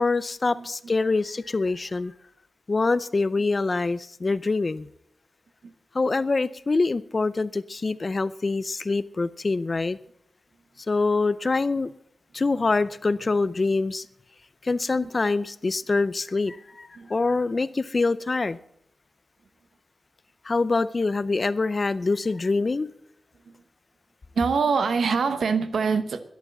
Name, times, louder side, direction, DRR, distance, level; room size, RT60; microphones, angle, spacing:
voice 1, 0.0-2.1 2.7-4.9 5.9-10.0 10.9-11.9 12.3-14.0 14.6-18.6 20.4-22.9, left 3 dB, 30° left, 0.4 m, -25 dB
voice 2, 24.3-26.2, right 5 dB, 80° right, 1.0 m, -24 dB
11.5 x 11.5 x 7.2 m
wide cardioid pair, 175°, 0 cm